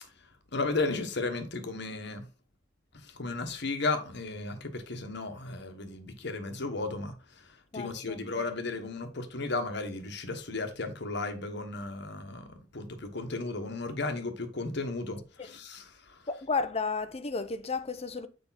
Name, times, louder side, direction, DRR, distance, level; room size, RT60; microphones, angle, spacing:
voice 1, 0.5-2.3 2.9-16.2, left 3 dB, 65° left, 1.3 m, -34 dB
voice 2, 7.7-8.2 16.3-18.3, left 4 dB, 35° left, 0.7 m, -32 dB
6.8 x 5.1 x 4.1 m
head